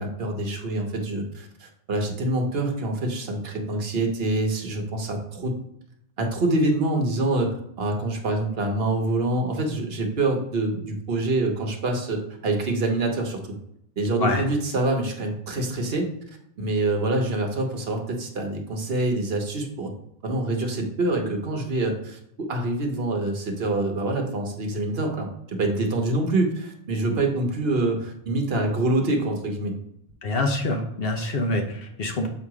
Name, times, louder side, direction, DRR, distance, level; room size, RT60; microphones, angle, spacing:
voice 1, 0.0-5.5 6.2-13.4 14.0-16.1 16.6-19.9 20.2-22.2 22.5-29.7, right 2 dB, 60° right, 3 dB, 1.1 m, -26 dB
voice 2, 30.2-32.3, left 2 dB, 60° left, 3 dB, 1.0 m, -25 dB
6.9 x 2.9 x 4.7 m, 0.76 s
omnidirectional pair, 1.2 m